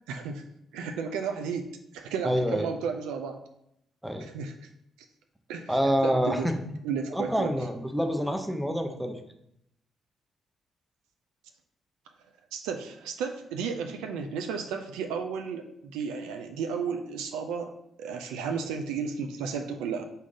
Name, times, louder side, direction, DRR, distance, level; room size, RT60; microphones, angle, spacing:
voice 1, 0.1-0.4 0.7-3.4 4.2-4.5 5.5-5.8 6.0-6.5 6.8-7.5 12.5-17.7 18.0-20.0, right 6 dB, 75° right, 5 dB, 0.3 m, -33 dB
voice 2, 2.2-2.7 4.0-4.3 5.7-6.6 7.1-9.2, equal, 5° right, 5 dB, 0.7 m, -27 dB
3.9 x 3.6 x 3.8 m, 0.76 s
hypercardioid pair, 45°, 0 cm